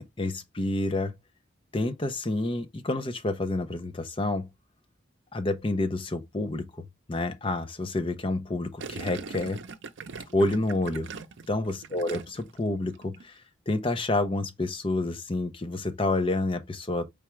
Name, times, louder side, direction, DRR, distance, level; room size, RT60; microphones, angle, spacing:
voice 1, 0.2-1.1 1.7-4.5 5.3-9.6 10.3-11.1 11.5-12.2 12.6-13.4 13.7-17.1, left 2 dB, 25° left, 0.6 m, -29 dB
Gurgling, 8.8-12.6 12.9-13.3, right 5 dB, 70° right, 0.6 m, -41 dB
4.8 x 3.4 x 3.1 m
head